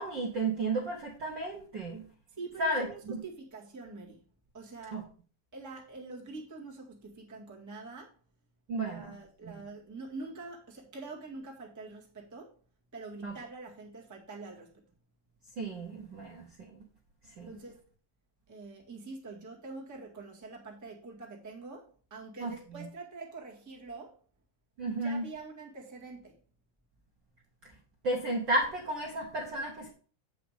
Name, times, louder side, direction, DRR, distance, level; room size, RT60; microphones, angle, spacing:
voice 1, 0.0-2.1 2.6-3.2 4.9-5.0 8.7-9.1 9.4-9.5 13.2-13.3 15.6-16.7 17.4-17.6 22.4-22.5 24.8-25.2 28.0-29.9, right 2 dB, 55° right, -1 dB, 1.4 m, -33 dB
voice 2, 2.3-4.2 4.5-5.0 5.5-8.2 8.8-12.5 12.9-14.8 17.4-17.8 18.5-24.2 24.9-26.4, right 3 dB, 10° right, -2 dB, 1.2 m, -45 dB
7.9 x 5.1 x 5.0 m, 0.40 s
omnidirectional pair, 3.5 m